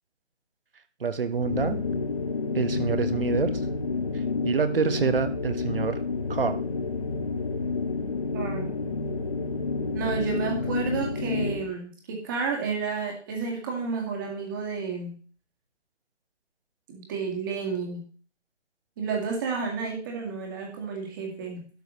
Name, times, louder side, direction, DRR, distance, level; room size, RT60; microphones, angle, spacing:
voice 1, 1.0-1.8 2.5-3.6 4.4-6.0 6.3-6.6, right 5 dB, 50° right, 11 dB, 1.3 m, -26 dB
sound 1, 1.3-11.8, left 4 dB, 30° left, 0.8 m, -29 dB
voice 2, 8.3-8.7 9.9-15.2 16.9-18.1 19.0-21.7, right 5 dB, 15° right, 2 dB, 1.9 m, -31 dB
12.0 x 4.8 x 6.4 m, 0.41 s
hypercardioid pair, 165°, 35 cm